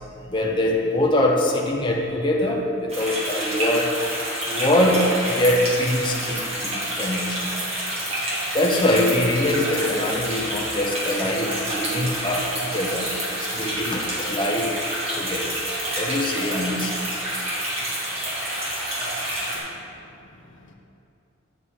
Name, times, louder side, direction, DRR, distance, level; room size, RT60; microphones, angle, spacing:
voice 1, 0.3-4.0 4.5-7.5 8.5-14.8 15.2-15.5 16.0-16.9, left 1 dB, 25° left, -1 dB, 0.8 m, -23 dB
sound 1, 2.9-19.6, right 1 dB, 30° right, 2.0 m, -28 dB
voice 2, 19.4-20.7, left 1 dB, 70° left, 2 dB, 0.8 m, -51 dB
9.4 x 6.3 x 4.2 m, 2.6 s
head